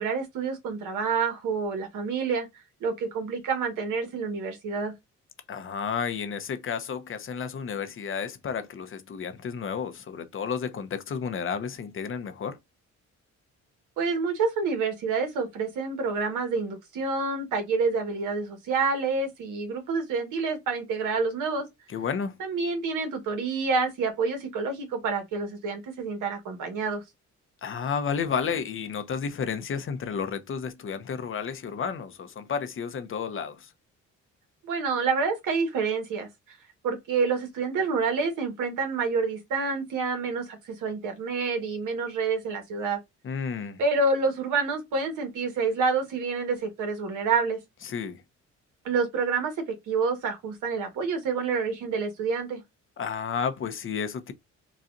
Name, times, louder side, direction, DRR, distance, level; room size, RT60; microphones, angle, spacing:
voice 1, 0.0-2.5 2.8-4.9 14.0-21.6 22.4-27.0 34.6-36.6 36.8-43.0 43.8-47.6 48.8-49.5 49.9-52.6, right 4 dB, 85° right, 1.3 m, -28 dB
voice 2, 5.5-12.6 21.9-22.4 27.6-33.7 43.2-43.8 47.8-48.2 53.0-54.3, left 6 dB, 45° left, 0.7 m, -32 dB
4.1 x 2.4 x 2.5 m
cardioid pair, 90°, 30 cm